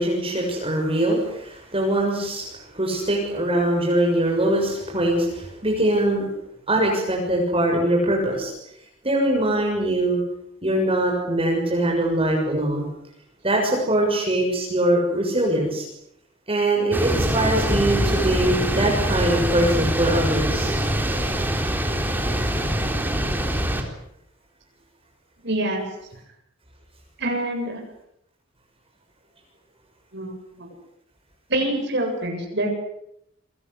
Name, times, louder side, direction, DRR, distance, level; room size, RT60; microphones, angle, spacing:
voice 1, 0.0-6.3 6.7-8.5 9.0-10.2 10.6-12.9 13.4-15.8 16.5-20.7, right 1 dB, 30° right, 0 dB, 6.8 m, -22 dB
sound 1, 16.9-23.8, equal, 10° right, 3.9 m, -24 dB
voice 2, 25.4-25.8 27.2-27.8 30.1-30.7 31.5-32.7, right 1 dB, 60° right, 2 dB, 7.8 m, -26 dB
28.5 x 23.0 x 8.2 m, 0.77 s
head